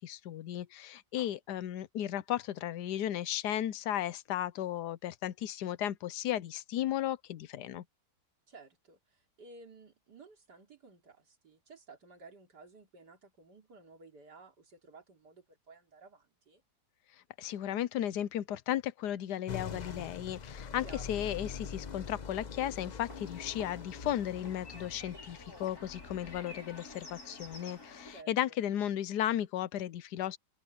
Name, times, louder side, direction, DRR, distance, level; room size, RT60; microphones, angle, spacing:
voice 1, 0.0-7.8 17.4-30.4, left 11 dB, 80° left, 1.3 m, -35 dB
voice 2, 8.5-16.6 20.8-21.0 28.1-28.6, right 3 dB, 75° right, 3.6 m, -55 dB
sound 1, 19.5-26.4, left 6 dB, 35° left, 0.7 m, -44 dB
sound 2, 23.1-28.2, left 2 dB, 65° left, 5.5 m, -50 dB
open air
omnidirectional pair, 1.8 m